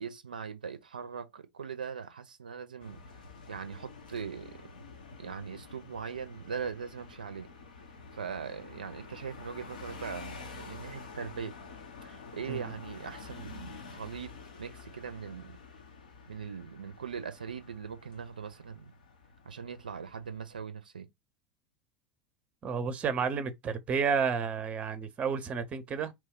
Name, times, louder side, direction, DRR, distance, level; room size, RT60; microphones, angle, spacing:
voice 1, 0.0-3.0 3.5-4.5 5.2-7.5 8.1-11.6 12.0-14.3 14.6-15.6 16.3-18.9 19.5-21.1, right 6 dB, 80° right, 0.4 m, -40 dB
sound 1, 2.8-20.6, left 4 dB, 75° left, 0.7 m, -49 dB
voice 2, 22.6-26.1, right 6 dB, 30° right, 0.6 m, -31 dB
2.9 x 2.2 x 3.5 m
figure-of-eight pair, 80°, 5 cm